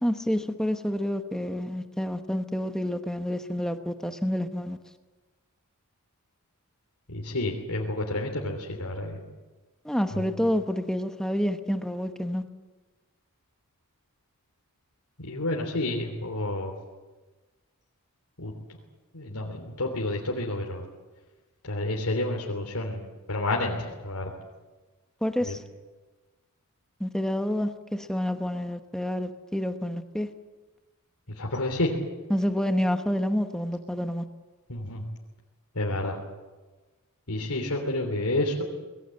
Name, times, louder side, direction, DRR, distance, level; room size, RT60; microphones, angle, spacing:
voice 1, 0.0-4.8 9.8-12.4 25.2-25.6 27.0-30.3 32.3-34.2, equal, 5° left, 6 dB, 1.0 m, -28 dB
voice 2, 7.1-9.2 10.1-10.2 15.2-16.7 18.4-18.5 19.1-20.8 21.6-24.3 25.5-25.6 31.4-31.9 34.7-35.0 35.7-36.2 37.3-38.6, left 2 dB, 85° left, 0 dB, 3.4 m, -29 dB
25.5 x 20.5 x 7.9 m, 1.2 s
head